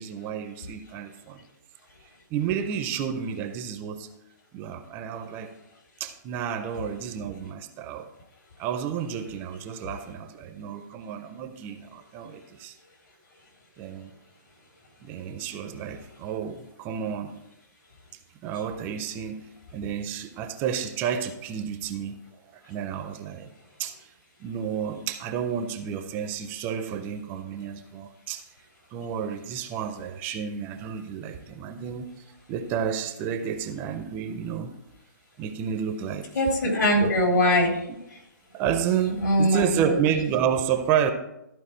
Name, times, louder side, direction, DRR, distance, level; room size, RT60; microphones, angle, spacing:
voice 1, 0.0-1.4 2.0-4.1 4.5-5.5 6.0-8.1 8.6-12.8 13.8-14.1 15.0-17.3 18.4-22.2 22.5-23.5 23.8-24.1 24.4-28.5 28.9-32.1 32.5-34.7 35.4-36.3 37.0-37.1 38.5-41.1, right 8 dB, 20° right, 8 dB, 0.5 m, -30 dB
voice 2, 36.3-37.8 39.2-40.0, equal, 70° left, 1 dB, 3.1 m, -22 dB
13.5 x 4.6 x 4.3 m, 0.88 s
hypercardioid pair, 155°, 10 cm